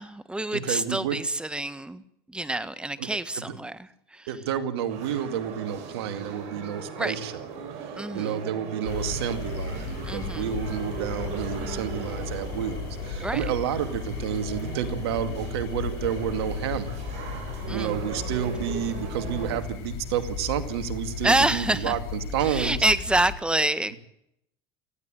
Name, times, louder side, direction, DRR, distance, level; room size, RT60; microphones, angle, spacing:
voice 1, 0.0-2.0 2.3-3.8 4.1-4.3 7.0-7.1 8.0-8.4 10.0-10.6 13.2-13.4 17.7-18.0 21.2-21.9 22.4-24.0, right 1 dB, 5° right, 14 dB, 1.5 m, -27 dB
voice 2, 0.5-1.2 3.0-3.2 4.3-7.5 7.8-17.0 17.7-22.8 23.9-24.0, right 9 dB, 85° right, 9 dB, 2.3 m, -30 dB
sound 1, 4.9-19.6, right 5 dB, 60° right, 6.8 m, -39 dB
sound 2, 8.8-23.3, left 6 dB, 75° left, 5.1 m, -35 dB
19.5 x 15.0 x 9.0 m, 0.75 s
supercardioid pair, 95°, 13 cm